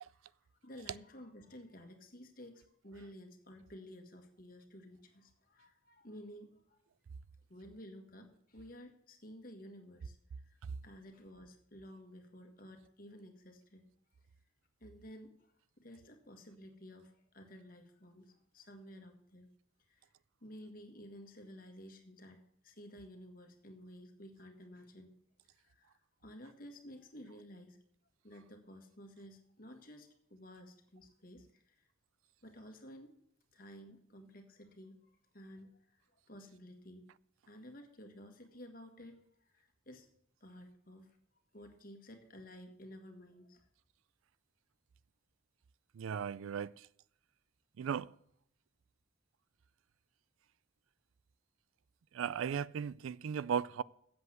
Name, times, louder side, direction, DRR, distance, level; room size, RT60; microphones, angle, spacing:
voice 1, 0.6-6.8 7.5-10.6 10.8-13.8 14.8-19.5 19.9-20.1 20.4-25.1 25.5-27.8 28.2-31.9 32.4-33.1 33.5-36.0 36.3-37.1 37.5-40.1 40.4-41.2 41.5-43.7, equal, 45° left, 1.7 m, -53 dB
voice 2, 46.0-46.7 47.8-48.1 52.1-53.8, right 7 dB, 85° right, 0.4 m, -36 dB
8.2 x 7.7 x 7.7 m
head